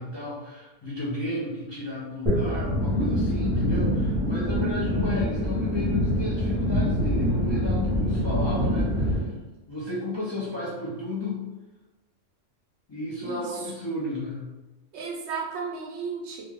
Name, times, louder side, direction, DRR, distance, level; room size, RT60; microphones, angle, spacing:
voice 1, 0.0-9.3 9.7-11.4 12.9-14.4, left 1 dB, 35° left, -9 dB, 0.5 m, -33 dB
sound 1, 2.3-9.2, equal, 25° right, 1.0 m, -25 dB
voice 2, 13.2-13.6 14.9-16.4, right 5 dB, 70° right, -1 dB, 0.8 m, -34 dB
2.5 x 2.2 x 3.4 m, 1.1 s
omnidirectional pair, 1.3 m